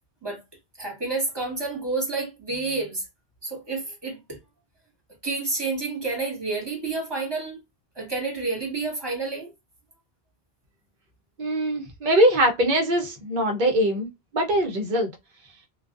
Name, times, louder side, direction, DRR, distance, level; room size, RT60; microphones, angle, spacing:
voice 1, 0.8-3.0 3.4-4.4 5.2-7.6 7.9-9.5, right 3 dB, 25° right, 1.2 m, -29 dB
voice 2, 11.4-14.1 14.3-15.1, equal, 50° right, 0.8 m, -22 dB
2.4 x 2.3 x 2.4 m
omnidirectional pair, 1.1 m